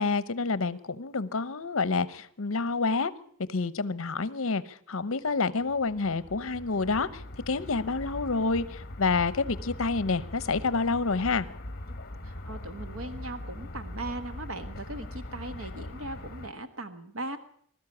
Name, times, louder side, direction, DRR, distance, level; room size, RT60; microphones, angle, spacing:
voice 1, 0.0-3.1 3.5-11.5, left 4 dB, 65° left, 0.8 m, -28 dB
sound 1, 5.5-16.5, left 1 dB, 45° left, 1.4 m, -41 dB
voice 2, 12.2-17.4, right 2 dB, 70° right, 1.4 m, -39 dB
21.0 x 13.5 x 9.7 m
head